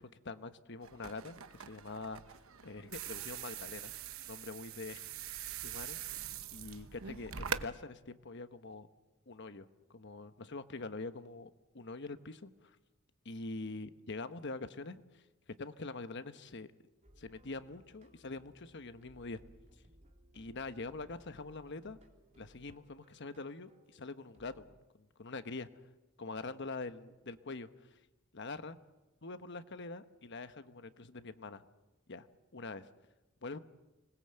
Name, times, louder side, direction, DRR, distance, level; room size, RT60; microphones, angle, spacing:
voice 1, 0.0-3.9 4.3-5.3 5.6-6.2 6.5-8.9 9.3-12.8 13.2-15.2 15.6-16.7 17.2-19.4 20.3-22.0 22.4-25.7 26.2-28.0 28.3-28.8 29.2-31.6 32.1-32.3 32.5-32.9 33.4-33.6, left 3 dB, 55° left, 10 dB, 1.2 m, -45 dB
sound 1, 0.8-7.7, right 8 dB, 75° right, 1.0 m, -43 dB
sound 2, 17.0-24.7, equal, 35° right, 3.2 m, -63 dB
26.0 x 20.5 x 7.8 m, 1.1 s
head